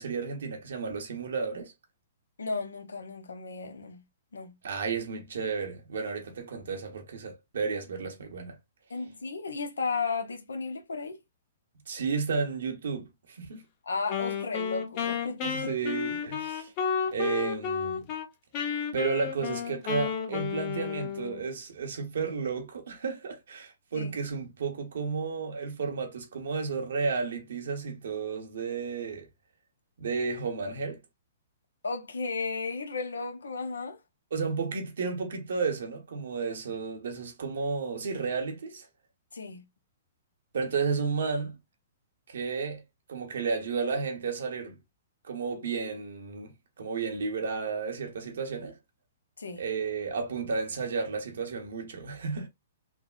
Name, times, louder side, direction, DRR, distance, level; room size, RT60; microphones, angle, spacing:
voice 1, 0.0-1.7 4.6-8.6 11.9-13.6 15.4-16.7 17.1-18.1 18.9-29.3 30.0-31.0 34.3-38.9 40.5-41.6 42.3-42.8 43.1-44.8 45.2-48.8 49.6-52.5, right 5 dB, 75° right, 0.9 m, -32 dB
voice 2, 2.4-4.0 4.3-4.5 8.9-11.2 13.9-15.7 23.9-24.1 31.8-34.0 39.3-39.6 49.4-49.6, left 4 dB, 85° left, 0.7 m, -34 dB
Wind instrument woodwind instrument, 14.1-18.3 18.5-21.5, left 7 dB, 40° left, 0.7 m, -32 dB
3.4 x 2.1 x 2.3 m
hypercardioid pair, 125°, 0 cm